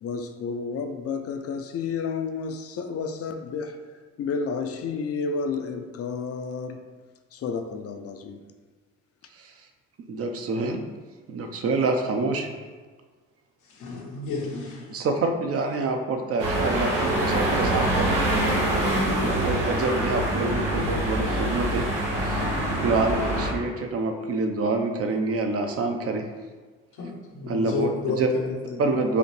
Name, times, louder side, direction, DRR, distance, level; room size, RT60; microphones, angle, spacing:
voice 1, 0.0-3.7 4.2-6.8 7.3-8.4, left 5 dB, 50° left, 0.5 m, -31 dB
voice 2, 10.1-10.8 11.3-12.5 14.9-18.2 18.5-18.7 19.1-21.9 22.2-22.5 22.8-26.2 27.5-28.3 28.8-29.2, right 3 dB, 50° right, 0.6 m, -27 dB
voice 3, 13.7-15.1 27.0-28.8, left 3 dB, 90° left, 1.0 m, -31 dB
sound 1, 16.4-23.5, right 1 dB, 90° right, 1.1 m, -25 dB
4.9 x 2.5 x 3.3 m
cardioid pair, 90°, 30 cm